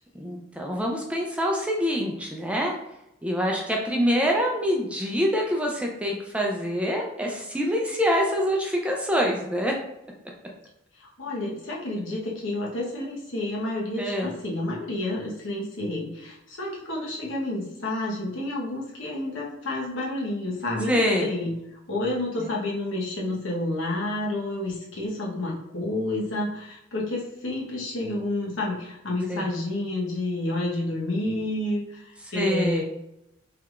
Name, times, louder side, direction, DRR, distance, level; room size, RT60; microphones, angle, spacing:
voice 1, 0.2-2.7 3.2-9.7 14.0-14.3 20.9-21.3 29.3-29.5 32.3-32.8, equal, 5° right, -1 dB, 0.5 m, -25 dB
voice 2, 11.0-21.6 21.9-32.8, left 1 dB, 80° left, -3 dB, 1.1 m, -30 dB
4.7 x 3.4 x 2.4 m, 0.85 s
head